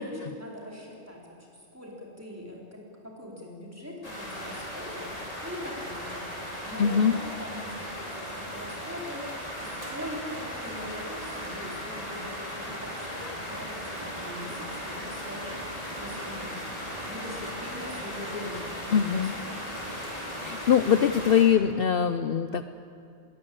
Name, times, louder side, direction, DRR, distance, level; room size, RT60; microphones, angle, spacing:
voice 1, 0.0-5.1 5.4-6.2 6.6-9.3 9.6-16.5 17.1-19.5, left 1 dB, 15° right, -3 dB, 4.5 m, -42 dB
sound 1, 4.0-21.4, equal, 35° left, 4.3 m, -37 dB
voice 2, 6.8-7.1 18.9-19.3 20.4-22.6, left 8 dB, 60° left, 10 dB, 0.8 m, -22 dB
21.0 x 18.5 x 8.8 m, 2.4 s
omnidirectional pair, 1.2 m